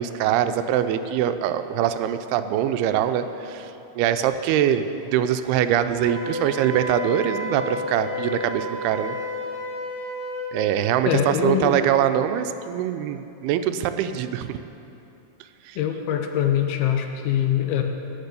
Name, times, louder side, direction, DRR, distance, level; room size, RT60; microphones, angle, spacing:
voice 1, 0.0-3.7 4.0-9.2 10.5-14.6 15.7-15.8, right 10 dB, 85° right, 10 dB, 2.5 m, -23 dB
Wind instrument woodwind instrument, 6.0-10.5, left 2 dB, 20° left, 2.4 m, -31 dB
voice 2, 11.1-11.8 15.8-17.8, left 9 dB, 80° left, 5 dB, 2.5 m, -23 dB
17.0 x 6.2 x 6.7 m, 2.9 s
omnidirectional pair, 4.6 m